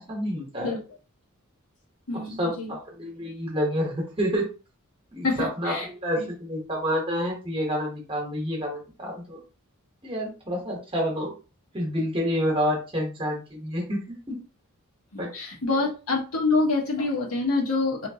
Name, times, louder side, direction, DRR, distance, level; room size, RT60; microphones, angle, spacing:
voice 1, 0.1-0.8 2.4-4.5 5.1-9.4 10.0-11.3 11.7-14.4 15.2-15.3, equal, 25° right, 0 dB, 1.0 m, -28 dB
voice 2, 2.1-2.8 5.2-5.9 6.2-6.3 15.1-18.1, left 3 dB, 75° left, -1 dB, 1.1 m, -26 dB
3.2 x 2.9 x 2.7 m, 0.34 s
head